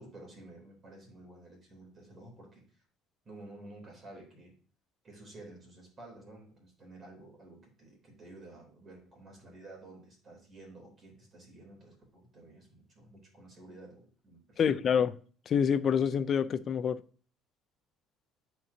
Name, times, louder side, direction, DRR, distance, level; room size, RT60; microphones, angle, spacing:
voice 1, 0.0-2.8 3.2-4.5 5.0-14.8, right 2 dB, 35° right, 3.4 m, -52 dB
voice 2, 14.6-15.2 15.5-17.0, left 7 dB, 45° left, 0.4 m, -27 dB
11.0 x 4.5 x 2.8 m
cardioid pair, 120°, 0 cm